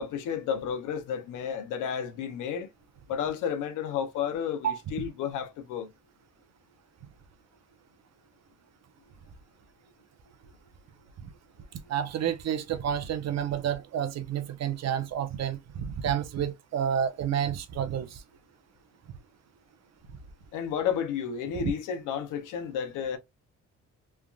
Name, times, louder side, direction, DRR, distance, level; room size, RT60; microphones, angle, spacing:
voice 1, 0.0-2.7 3.1-5.9 20.5-23.2, left 8 dB, 85° left, 0.7 m, -32 dB
voice 2, 11.9-18.2, right 9 dB, 60° right, 0.7 m, -30 dB
3.3 x 2.4 x 2.3 m
cardioid pair, 90°, 30 cm